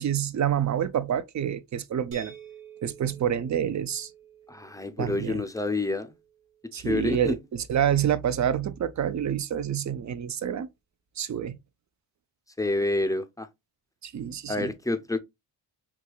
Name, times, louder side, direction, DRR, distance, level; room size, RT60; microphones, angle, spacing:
voice 1, 0.0-2.3 2.8-4.1 5.0-5.4 6.7-10.7 11.2-11.6 14.0-14.7, right 9 dB, 40° right, 0.5 m, -27 dB
sound 1, 2.1-7.9, right 6 dB, 75° right, 1.4 m, -51 dB
voice 2, 4.5-6.1 6.8-7.3 12.6-13.5 14.5-15.2, left 2 dB, 10° left, 0.5 m, -28 dB
4.6 x 2.8 x 2.2 m
cardioid pair, 65°, 46 cm